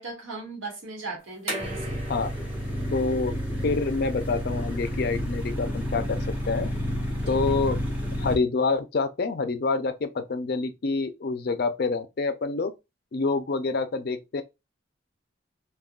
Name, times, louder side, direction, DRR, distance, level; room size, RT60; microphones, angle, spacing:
voice 1, 0.0-2.0 7.3-7.4, right 3 dB, 80° right, 1.4 m, -37 dB
sound 1, 1.2-7.9, right 1 dB, 30° right, 1.5 m, -42 dB
sound 2, 1.6-8.4, equal, 10° right, 0.8 m, -30 dB
voice 2, 2.9-3.4 3.6-6.2 6.5-6.7 7.3-7.8 8.2-12.7 13.1-14.4, left 4 dB, 50° left, 0.4 m, -27 dB
3.5 x 2.3 x 2.3 m
head